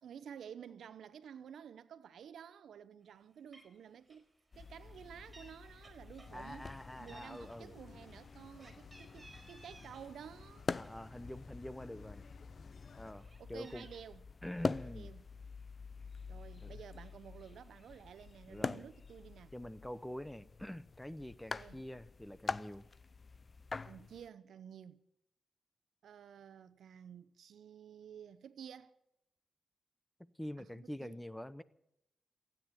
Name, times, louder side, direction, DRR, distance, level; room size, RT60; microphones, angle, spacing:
voice 1, 0.0-6.7 7.0-10.7 13.4-14.2 14.8-15.3 16.3-19.5 21.6-21.8 23.8-25.0 26.0-28.9 30.6-31.2, right 8 dB, 85° right, 0.7 m, -52 dB
Meow, 3.2-3.3 3.5-3.8 4.1-4.3 4.6-5.5 5.8-6.8 7.1-10.1 10.5-11.6 12.1-12.2 12.5-14.0, right 1 dB, 20° right, 4.5 m, -60 dB
sound 1, 4.5-24.3, left 4 dB, 40° left, 0.5 m, -45 dB
sound 2, 6.2-13.1, left 5 dB, 60° left, 1.0 m, -57 dB
voice 2, 6.3-7.7 10.7-12.2 13.0-13.9 14.4-15.1 16.6-16.8 18.5-18.8 19.5-22.9 30.2-31.6, left 1 dB, 10° left, 0.7 m, -46 dB
16.0 x 9.3 x 9.7 m
cardioid pair, 75°, 0 cm